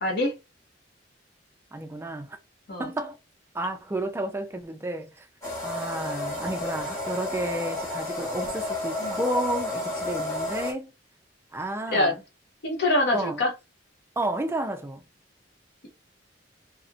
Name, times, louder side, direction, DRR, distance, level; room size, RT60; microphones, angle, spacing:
voice 1, 0.0-0.3 2.7-2.9 9.0-9.2 11.9-12.1 12.6-13.5, left 1 dB, 60° left, 0.7 m, -24 dB
voice 2, 1.7-2.4 2.8-3.2 3.5-5.3 5.6-10.9 11.5-12.2 13.1-13.4 14.2-15.0, right 1 dB, 15° right, 0.3 m, -31 dB
sound 1, 5.4-10.7, left 2 dB, 15° left, 1.0 m, -31 dB
2.5 x 2.0 x 2.5 m
head